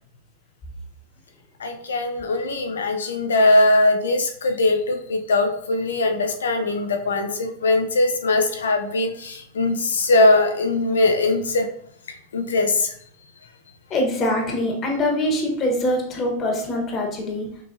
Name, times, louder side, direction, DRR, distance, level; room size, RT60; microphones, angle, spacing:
voice 1, 1.6-11.7 12.3-12.9, left 2 dB, 85° left, 5 dB, 0.7 m, -20 dB
voice 2, 13.9-17.5, left 1 dB, 35° left, 1 dB, 1.3 m, -23 dB
6.4 x 2.8 x 2.6 m, 0.66 s
hypercardioid pair, 100°, 0 cm